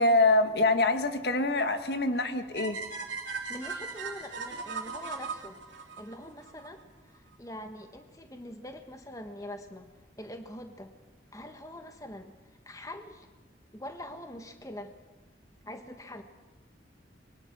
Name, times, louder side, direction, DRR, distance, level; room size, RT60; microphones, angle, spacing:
voice 1, 0.0-2.8, left 2 dB, 60° left, 8 dB, 1.5 m, -25 dB
sound 1, 2.5-6.7, right 4 dB, 90° right, 3.0 m, -38 dB
voice 2, 3.5-9.9 10.2-10.9 11.3-12.3 12.6-13.3 13.7-14.9 15.6-16.2, left 1 dB, 20° left, 6 dB, 1.4 m, -44 dB
24.5 x 23.0 x 6.1 m, 1.2 s
head